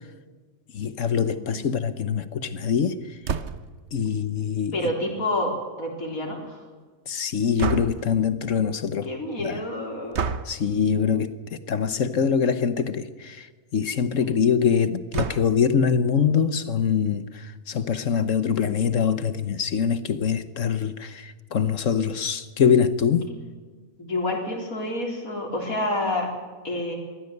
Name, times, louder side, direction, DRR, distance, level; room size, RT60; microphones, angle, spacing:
voice 1, 0.7-3.0 3.9-4.8 7.1-9.1 9.4-9.6 10.4-13.5 13.7-23.3, left 7 dB, 65° left, 1.4 m, -24 dB
voice 2, 1.3-1.7 4.7-6.6 9.1-10.2 23.3-23.4 24.0-26.3 26.6-27.0, left 1 dB, 90° left, 4.3 m, -28 dB
sound 1, 3.2-3.8 7.6-8.2 10.1-10.6 11.8-12.1 12.5-12.6 12.8-12.9 15.1-15.7, right 5 dB, 55° right, 1.2 m, -29 dB
23.0 x 15.5 x 8.1 m
omnidirectional pair, 1.4 m